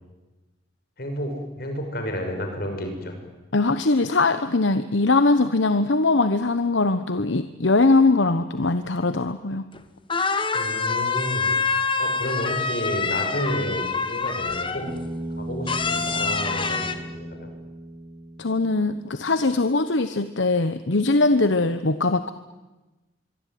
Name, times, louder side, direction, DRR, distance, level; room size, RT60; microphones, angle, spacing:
voice 1, 1.0-3.2 10.5-11.5 12.0-14.9 15.4-17.5, equal, 50° left, 4 dB, 6.3 m, -31 dB
voice 2, 3.5-9.6 18.4-22.3, left 3 dB, 75° left, 11 dB, 1.0 m, -21 dB
sound 1, 9.7-9.8 10.1-14.9 15.7-16.9, left 4 dB, 25° left, 1.5 m, -26 dB
Bass guitar, 14.9-19.2, right 1 dB, 25° right, 3.1 m, -36 dB
24.5 x 23.5 x 9.4 m, 1.1 s
head